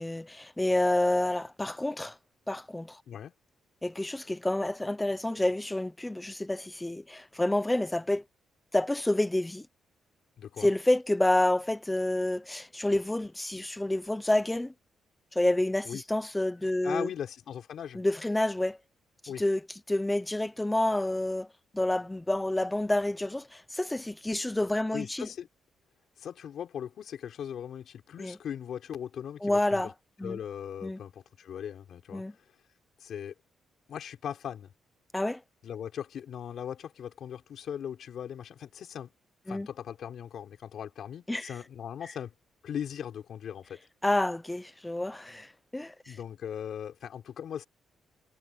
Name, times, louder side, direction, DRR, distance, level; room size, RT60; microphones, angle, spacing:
voice 1, 0.0-2.2 2.5-3.0 3.8-8.2 8.7-9.7 10.6-14.7 15.3-17.1 17.9-18.8 19.2-19.6 19.9-21.5 21.7-25.3 28.2-28.4 29.4-29.9 30.2-30.4 30.8-31.0 32.1-32.3 35.1-35.4 39.5-39.7 41.3-41.5 44.0-46.2, left 1 dB, 5° left, 0.6 m, -28 dB
voice 2, 10.4-10.7 15.8-16.0 16.8-18.0 19.3-19.4 24.9-25.5 26.2-29.9 30.2-32.2 33.0-33.3 33.9-34.7 35.6-39.1 39.5-42.3 42.6-43.8 46.1-47.7, left 9 dB, 55° left, 5.8 m, -39 dB
cardioid pair, 180°, 0 cm